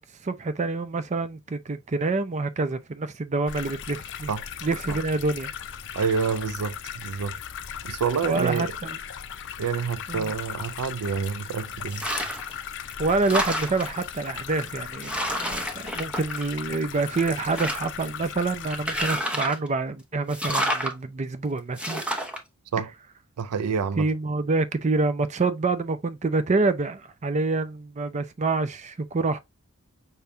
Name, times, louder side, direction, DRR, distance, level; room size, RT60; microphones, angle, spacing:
voice 1, 0.2-4.3 4.6-5.5 8.2-9.0 10.1-10.3 13.0-22.0 24.0-29.4, right 3 dB, 30° right, 0.5 m, -27 dB
sound 1, 3.5-19.2, left 8 dB, 55° left, 0.6 m, -37 dB
voice 2, 6.0-7.4 7.8-8.8 9.6-12.0 22.7-22.9 23.4-24.1, right 6 dB, 90° right, 0.4 m, -28 dB
sound 2, 11.9-12.5 12.9-14.0 14.6-14.7 15.0-16.8 17.1-18.0 18.7-19.7 20.3-20.9 21.8-22.4, equal, 5° right, 0.8 m, -29 dB
5.7 x 3.5 x 2.6 m
head